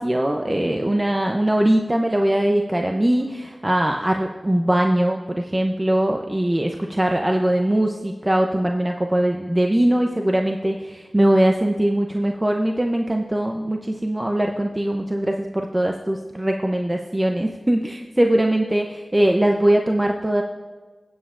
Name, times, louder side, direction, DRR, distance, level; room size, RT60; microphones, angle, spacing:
voice 1, 0.0-20.4, right 1 dB, 20° right, 2 dB, 0.6 m, -21 dB
20.0 x 8.7 x 2.5 m, 1.4 s
wide cardioid pair, 75°, 0 cm